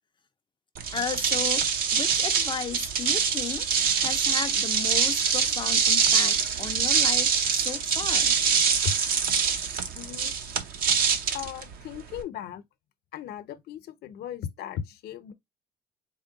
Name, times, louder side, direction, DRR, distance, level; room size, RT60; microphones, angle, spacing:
sound 1, 0.8-12.2, right 6 dB, 60° right, 0.8 m, -24 dB
voice 1, 0.9-8.3, left 6 dB, 30° left, 0.4 m, -35 dB
voice 2, 9.9-10.3 11.3-12.6 13.1-15.3, left 9 dB, 70° left, 0.7 m, -36 dB
4.3 x 2.2 x 3.8 m
cardioid pair, 110°, 17 cm